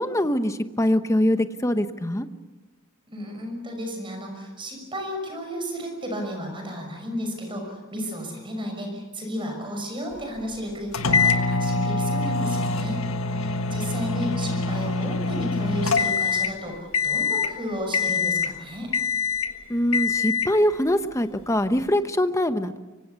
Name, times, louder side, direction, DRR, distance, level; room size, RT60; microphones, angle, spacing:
voice 1, 0.0-2.3 19.7-22.8, left 1 dB, 15° left, 9 dB, 1.0 m, -23 dB
voice 2, 3.1-13.0 13.3-18.9, equal, 25° right, 3 dB, 6.2 m, -33 dB
sound 1, 10.9-16.6 16.9-17.5 17.9-18.6 18.9-19.5 19.9-20.6, left 4 dB, 75° left, 1.5 m, -24 dB
25.0 x 24.5 x 7.0 m, 1.2 s
head